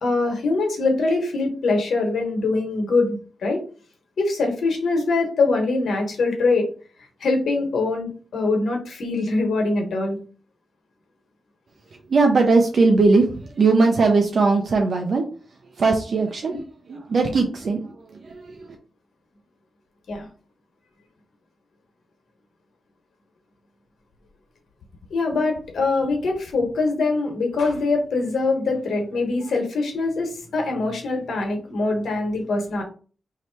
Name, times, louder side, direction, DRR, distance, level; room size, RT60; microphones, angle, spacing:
voice 1, 0.0-3.6 4.2-6.7 7.2-10.2 16.5-16.6 20.1-20.3 25.1-32.8, left 3 dB, 90° left, 2 dB, 1.2 m, -23 dB
voice 2, 12.1-15.3 15.8-18.8, right 3 dB, 65° right, 2 dB, 0.6 m, -20 dB
3.2 x 2.8 x 4.5 m, 0.39 s
wide cardioid pair, 105°, 0 cm